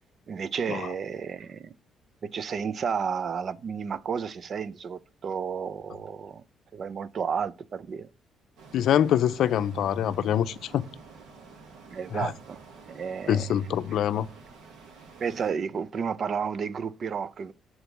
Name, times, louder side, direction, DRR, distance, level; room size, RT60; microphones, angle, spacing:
voice 1, 0.3-1.7 2.2-6.4 6.7-8.1 11.9-13.5 15.2-17.5, right 6 dB, 50° right, 0.5 m, -32 dB
sound 1, 8.6-15.5, right 4 dB, 90° right, 1.6 m, -49 dB
voice 2, 8.7-10.8 12.1-12.3 13.3-14.3, left 10 dB, 75° left, 0.5 m, -25 dB
6.9 x 3.8 x 6.0 m
cardioid pair, 90°, 0 cm